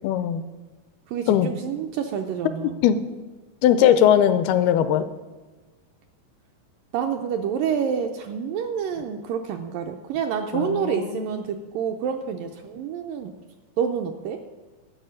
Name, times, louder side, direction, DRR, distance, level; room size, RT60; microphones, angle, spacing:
voice 1, 0.0-0.4 1.3-1.5 2.8-3.1 3.6-5.1 10.5-11.4, left 10 dB, 85° left, 12 dB, 2.5 m, -20 dB
voice 2, 1.1-2.8 6.9-13.3 13.8-14.4, right 7 dB, 85° right, 4 dB, 2.0 m, -28 dB
12.5 x 5.7 x 8.7 m, 1.3 s
omnidirectional pair, 4.5 m